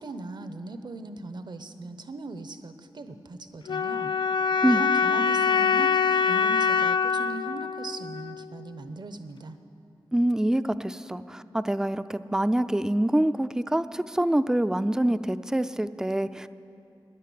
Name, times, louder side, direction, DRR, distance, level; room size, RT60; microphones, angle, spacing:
voice 1, 0.0-4.1 4.7-5.9 6.2-9.6, right 3 dB, 60° right, 9 dB, 0.9 m, -39 dB
sound 1, 3.7-8.7, left 6 dB, 65° left, 0.4 m, -24 dB
voice 2, 10.1-16.5, right 1 dB, 5° right, 13 dB, 0.4 m, -25 dB
13.5 x 10.5 x 8.6 m, 2.8 s
cardioid pair, 55°, 8 cm